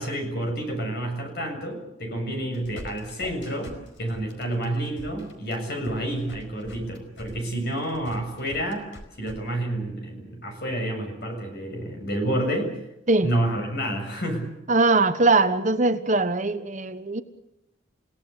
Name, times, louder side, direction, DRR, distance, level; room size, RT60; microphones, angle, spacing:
voice 1, 0.0-8.9 9.2-12.7 13.2-14.5, right 1 dB, 55° left, 4 dB, 7.0 m, -29 dB
sound 1, 2.3-9.4, left 1 dB, 70° left, 4.8 m, -43 dB
voice 2, 14.7-17.2, right 3 dB, 40° right, 9 dB, 1.2 m, -21 dB
29.0 x 17.5 x 8.3 m, 0.88 s
head